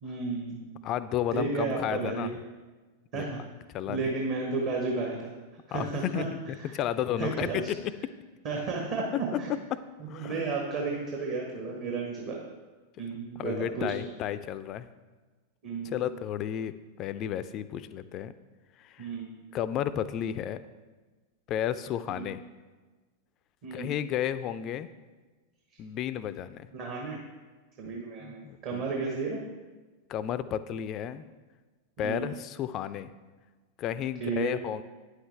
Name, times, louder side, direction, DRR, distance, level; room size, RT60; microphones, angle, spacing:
voice 1, 0.0-0.6 1.3-2.3 3.1-3.4 3.9-5.3 5.7-6.2 6.6-6.8 7.2-7.6 8.4-9.1 9.4-9.5 10.0-12.4 13.0-13.9 15.6-16.0 19.0-19.3 22.1-22.2 23.6-23.9 26.7-27.2 27.8-29.4 32.0-32.3 34.2-34.5, right 4 dB, 45° right, -1 dB, 1.2 m, -33 dB
voice 2, 0.8-2.4 3.1-3.3 3.7-4.0 5.7-8.1 9.1-10.5 13.4-14.9 15.8-18.3 18.8-19.1 19.5-20.6 21.5-22.4 23.7-24.9 25.8-26.7 27.8-28.9 30.1-31.3 32.0-33.1 33.8-34.8, left 10 dB, 35° left, 14 dB, 0.4 m, -33 dB
9.3 x 6.5 x 3.3 m, 1.3 s
figure-of-eight pair, 90°, 0 cm